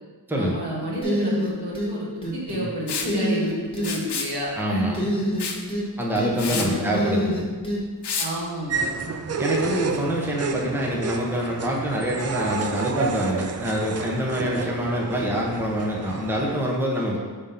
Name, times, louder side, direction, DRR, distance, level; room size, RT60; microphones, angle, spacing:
voice 1, 0.3-4.9 6.4-7.0 8.2-9.1 10.5-10.7, right 1 dB, 70° right, -4 dB, 1.6 m, -30 dB
sound 1, 1.0-1.9 2.2-2.7 3.0-3.9 4.9-5.9 6.1-7.8, left 1 dB, 15° left, 1.3 m, -26 dB
Liquid, 2.9-3.1 3.8-4.3 5.4-5.6 6.0-6.1 6.4-6.7 8.0-8.3, left 5 dB, 70° left, 0.7 m, -28 dB
voice 2, 4.6-5.0 6.0-7.5 9.4-17.2, right 1 dB, 5° right, -2 dB, 0.9 m, -25 dB
sound 2, 8.7-16.5, right 4 dB, 40° right, 0.4 m, -30 dB
5.2 x 3.6 x 5.6 m, 1.4 s
wide cardioid pair, 100°, 41 cm